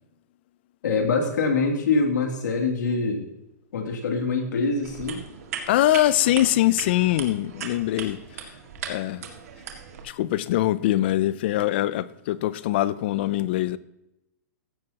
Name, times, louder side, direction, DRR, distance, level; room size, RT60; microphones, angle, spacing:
voice 1, 0.8-3.3 3.7-5.2, left 4 dB, 85° left, 2.8 m, -24 dB
sound 1, 4.8-10.0, right 7 dB, 55° right, 2.0 m, -38 dB
voice 2, 5.7-8.5 8.8-9.3 10.0-13.8, left 14 dB, 35° left, 0.5 m, -23 dB
15.0 x 11.0 x 2.9 m
hypercardioid pair, 170°, 9 cm